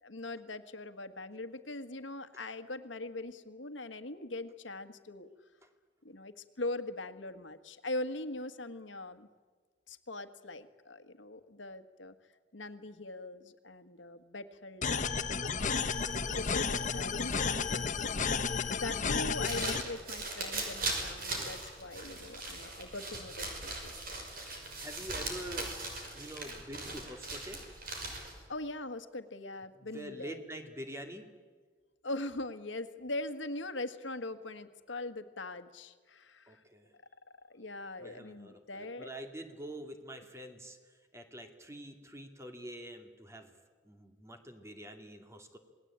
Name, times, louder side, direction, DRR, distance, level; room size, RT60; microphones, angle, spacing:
voice 1, 0.0-5.3 6.0-9.3 9.9-12.1 12.5-15.2 16.3-18.1 18.6-23.9 28.5-30.4 32.0-36.6 37.4-39.1, left 2 dB, 85° left, 10 dB, 1.7 m, -41 dB
sound 1, 14.8-19.8, left 5 dB, 45° left, 1.2 m, -32 dB
sound 2, 19.2-28.4, right 2 dB, 50° right, 6.0 m, -39 dB
voice 2, 24.8-25.8 26.1-27.6 29.8-31.3 36.5-36.9 38.0-43.5 43.8-45.6, right 1 dB, 15° right, 5 dB, 2.6 m, -46 dB
27.5 x 20.0 x 8.8 m, 1.5 s
head